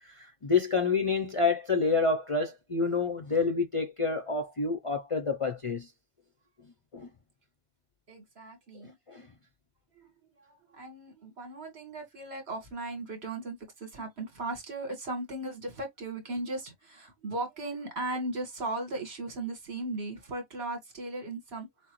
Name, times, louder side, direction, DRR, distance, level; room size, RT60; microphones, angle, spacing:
voice 1, 0.0-5.9 6.9-7.1 8.8-9.3, left 4 dB, 40° left, 0.5 m, -28 dB
voice 2, 8.1-8.9 10.0-10.1 10.5-21.7, right 2 dB, 65° right, 1.7 m, -37 dB
6.1 x 2.0 x 3.0 m
omnidirectional pair, 1.1 m